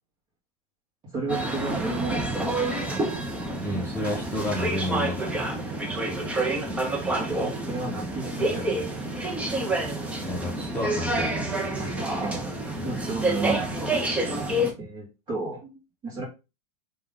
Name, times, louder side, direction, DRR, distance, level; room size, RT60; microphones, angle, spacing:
voice 1, 1.1-2.3 7.2-8.7 11.8-12.4 12.8-13.9 14.8-15.7 16.0-16.3, right 3 dB, 25° right, -3 dB, 2.1 m, -32 dB
sound 1, 1.3-14.7, right 1 dB, 5° right, 0.6 m, -28 dB
voice 2, 3.6-5.4 10.2-11.9, left 1 dB, 10° left, -5 dB, 1.0 m, -31 dB
3.6 x 3.4 x 3.6 m, 0.28 s
supercardioid pair, 145°, 20 cm